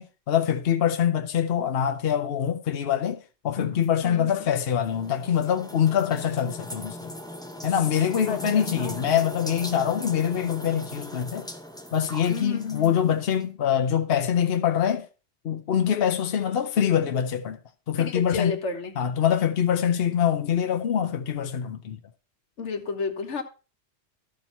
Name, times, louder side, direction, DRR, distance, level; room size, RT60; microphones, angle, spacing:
voice 1, 0.0-7.1 7.6-11.5 11.9-15.1 15.4-17.6 17.9-18.5 19.0-22.0, left 9 dB, 60° left, 0.9 m, -24 dB
sound 1, 3.8-13.4, equal, 5° left, 0.8 m, -39 dB
voice 2, 4.0-4.4 8.3-8.9 12.3-13.1 18.0-19.0 22.6-23.4, left 5 dB, 85° left, 1.5 m, -32 dB
13.0 x 4.5 x 5.4 m
omnidirectional pair, 1.2 m